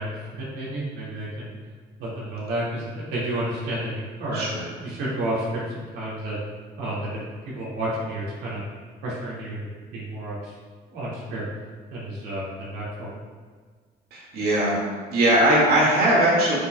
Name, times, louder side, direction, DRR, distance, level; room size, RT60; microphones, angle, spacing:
voice 1, 0.0-1.5 2.0-4.4 4.8-6.4 6.8-8.6 9.0-10.5 10.9-11.5 11.9-13.2, right 1 dB, 85° right, -6 dB, 1.9 m, -31 dB
voice 2, 4.3-4.6 14.1-14.8 15.1-16.6, right 1 dB, 65° right, -4 dB, 1.9 m, -20 dB
11.5 x 5.3 x 2.2 m, 1.5 s
cardioid pair, 110°, 17 cm